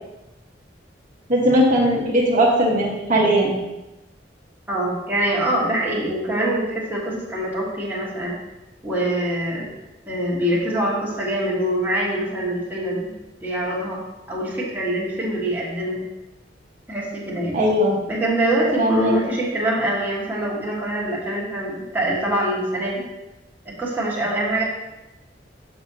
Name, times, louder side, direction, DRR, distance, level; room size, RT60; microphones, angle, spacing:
voice 1, 1.3-3.5 17.5-18.0 18.8-19.1, equal, 45° right, -4 dB, 1.0 m, -18 dB
voice 2, 4.7-8.3 8.8-9.7 10.1-13.1 13.4-14.0 14.3-16.0 16.9-17.6 18.1-23.0 23.6-24.6, right 1 dB, 10° right, -6 dB, 1.5 m, -24 dB
6.7 x 6.0 x 2.8 m, 0.99 s
head